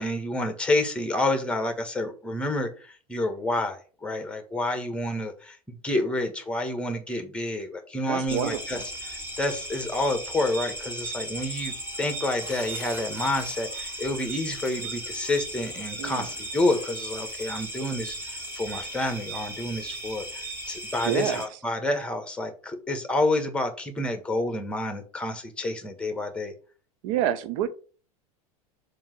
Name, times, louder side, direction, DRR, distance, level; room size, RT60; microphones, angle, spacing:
voice 1, 0.0-5.6 5.8-8.8 9.1-26.5, left 1 dB, 5° left, 1.6 m, -29 dB
voice 2, 8.1-8.8 16.0-16.3 21.0-21.4 27.0-27.7, right 11 dB, 55° right, 0.8 m, -28 dB
sound 1, 8.3-21.5, right 1 dB, 10° right, 2.7 m, -36 dB
7.1 x 3.1 x 6.1 m
figure-of-eight pair, 80°, 19 cm